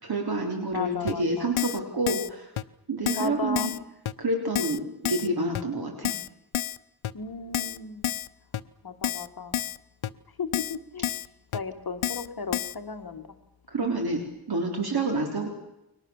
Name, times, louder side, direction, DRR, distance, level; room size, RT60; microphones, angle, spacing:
voice 1, 0.0-2.5 2.9-3.7 4.2-6.1 13.7-14.2 14.5-15.5, right 2 dB, 45° right, 2 dB, 4.1 m, -28 dB
voice 2, 0.7-1.6 3.2-3.7 7.1-8.1 8.8-9.6 10.4-11.1 11.5-13.3, left 4 dB, 45° left, 6 dB, 2.0 m, -35 dB
Keyboard (musical), 1.1-1.2 1.6-1.8 2.1-2.3 2.6-2.7 3.1-3.3 3.6-3.8 4.1-4.2 4.5-4.8 5.0-5.3 5.5-5.6 6.0-6.3 6.5-6.8 7.0-7.1 7.5-7.8 8.0-8.3 8.5-8.6 9.0-9.3 9.5-9.8 10.0-10.1 10.5-10.8 11.0-11.3 11.5-11.6 12.0-12.3 12.5-12.7, left 11 dB, 75° left, 0.9 m, -29 dB
30.0 x 22.5 x 7.3 m, 0.90 s
wide cardioid pair, 165°, 49 cm